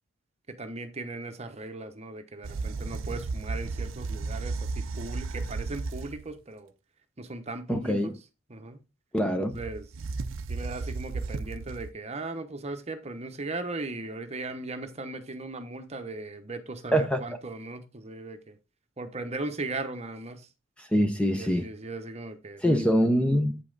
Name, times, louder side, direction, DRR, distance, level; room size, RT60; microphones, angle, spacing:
voice 1, 0.5-6.7 7.2-8.2 8.5-8.8 9.5-9.9 10.5-18.6 19.0-20.5 21.3-22.9, right 2 dB, 30° right, 1.0 m, -38 dB
sound 1, 2.4-6.3 9.5-11.9, right 3 dB, 75° right, 0.5 m, -34 dB
voice 2, 7.7-8.1 9.1-9.5 16.9-17.2 20.8-21.6 22.6-23.6, equal, 5° left, 0.7 m, -24 dB
8.5 x 5.6 x 4.0 m
head